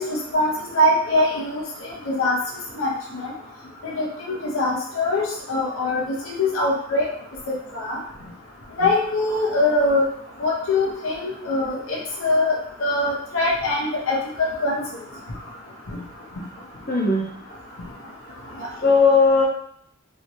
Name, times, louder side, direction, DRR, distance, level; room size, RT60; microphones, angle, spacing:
voice 1, 0.0-1.6 2.1-2.4 2.8-3.3 3.8-5.2 5.5-6.0 6.3-7.0 7.8-8.0 8.8-10.0 10.4-14.8, left 2 dB, 75° left, -2 dB, 0.7 m, -22 dB
voice 2, 16.9-17.3 18.4-19.4, left 4 dB, 45° left, -4 dB, 0.8 m, -18 dB
3.1 x 3.0 x 2.8 m, 0.68 s
head